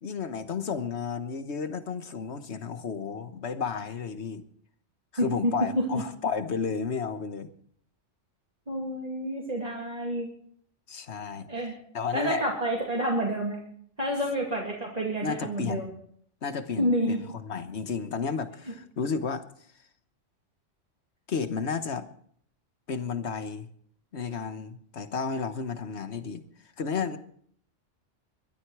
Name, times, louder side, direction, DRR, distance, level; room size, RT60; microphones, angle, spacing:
voice 1, 0.0-4.4 5.1-7.5 10.9-11.5 11.9-12.5 15.2-15.9 16.4-19.4 21.3-22.0 22.9-23.7 24.1-26.4 26.8-27.2, left 5 dB, 65° left, 10 dB, 1.5 m, -32 dB
voice 2, 5.2-6.0 8.7-10.3 11.5-11.7 12.1-13.6 14.0-15.9 16.8-17.2, equal, 30° right, -3 dB, 2.7 m, -28 dB
22.5 x 12.5 x 4.8 m, 0.62 s
omnidirectional pair, 1.3 m